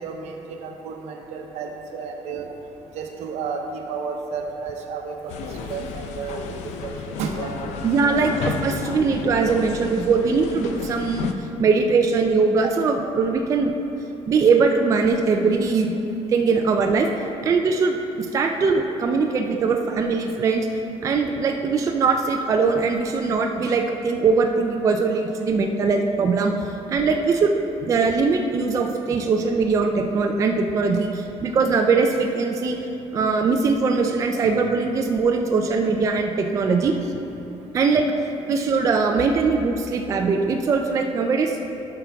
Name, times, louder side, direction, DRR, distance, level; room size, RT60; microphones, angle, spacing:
voice 1, 0.0-2.5 2.9-5.4 5.7-7.5 7.8-8.2 30.9-31.0 36.6-36.8, right 5 dB, 75° right, 3 dB, 0.9 m, -32 dB
sound 1, 5.3-11.3, left 5 dB, 85° left, 0.6 m, -32 dB
voice 2, 7.8-11.3 11.6-13.7 14.3-16.0 16.3-17.1 17.4-20.7 21.0-27.5 27.8-32.8 33.1-36.9 37.7-38.0 38.5-41.6, right 4 dB, 30° right, 3 dB, 0.4 m, -21 dB
11.5 x 5.9 x 3.4 m, 3.0 s
cardioid pair, 165°, 11 cm